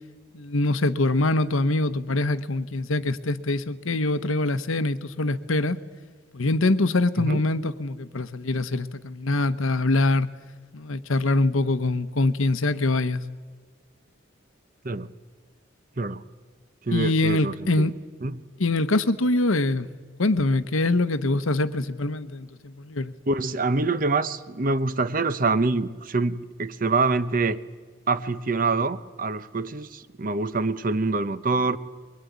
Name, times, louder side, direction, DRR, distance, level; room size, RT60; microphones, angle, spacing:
voice 1, 0.3-5.8 6.3-10.3 10.7-13.2 16.9-17.9 18.6-19.9 20.2-23.1, left 2 dB, 80° left, 12 dB, 1.0 m, -24 dB
voice 2, 16.9-17.9 18.2-18.4 23.3-27.6 28.1-31.8, right 3 dB, 40° right, 14 dB, 0.8 m, -25 dB
23.0 x 20.5 x 9.4 m, 1.4 s
head